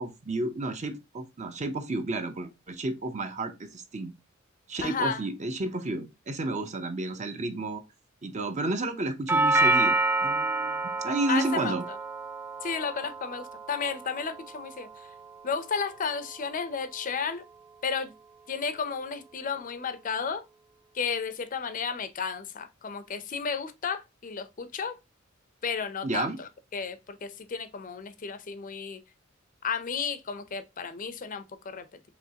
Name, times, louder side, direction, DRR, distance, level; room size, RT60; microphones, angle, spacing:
voice 1, 0.0-4.1 4.7-7.8 8.2-11.8 26.0-26.4, right 2 dB, 35° right, 0.7 m, -31 dB
voice 2, 4.8-5.2 11.3-12.0 12.6-15.1 15.4-17.4 17.8-18.1 18.5-20.5 20.9-25.0 25.6-29.0 29.6-31.9, left 6 dB, 40° left, 0.5 m, -33 dB
Doorbell, 9.3-17.3, right 2 dB, 10° right, 0.3 m, -29 dB
5.0 x 3.0 x 2.8 m
head